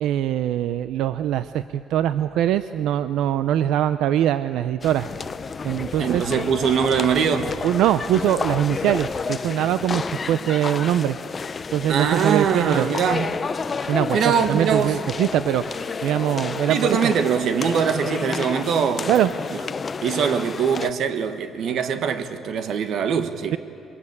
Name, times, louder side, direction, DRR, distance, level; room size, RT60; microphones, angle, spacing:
voice 1, 0.0-5.1 5.6-6.2 7.6-11.2 11.7-12.9 13.9-17.0 19.1-19.3, right 11 dB, 90° right, 0.5 m, -22 dB
sound 1, 4.8-20.9, left 5 dB, 30° left, 0.6 m, -30 dB
voice 2, 6.0-7.6 11.9-13.5 14.1-15.0 16.7-19.3 20.0-23.6, right 7 dB, 65° right, 1.6 m, -22 dB
24.0 x 23.0 x 8.6 m
cardioid pair, 135°, 0 cm